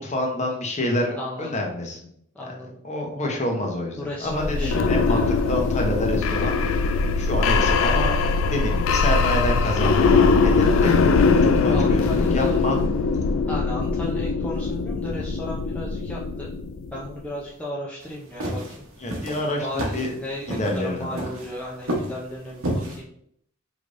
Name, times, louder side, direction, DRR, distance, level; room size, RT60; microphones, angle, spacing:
voice 1, 0.0-2.1 2.4-2.6 2.8-5.2 5.5-6.9 7.2-8.1 8.5-10.9 11.4-12.8 19.0-20.1 20.6-21.2, left 1 dB, 30° left, 1 dB, 0.8 m, -27 dB
voice 2, 1.1-1.5 2.3-2.7 4.0-5.3 5.6-5.8 11.7-12.6 13.5-16.5 16.9-18.8 19.6-23.1, left 1 dB, 5° left, -5 dB, 0.5 m, -35 dB
sound 1, 4.3-17.1, left 4 dB, 65° left, 0.4 m, -21 dB
sound 2, 18.0-23.0, right 1 dB, 75° right, 1.0 m, -30 dB
4.9 x 3.3 x 2.5 m, 0.68 s
head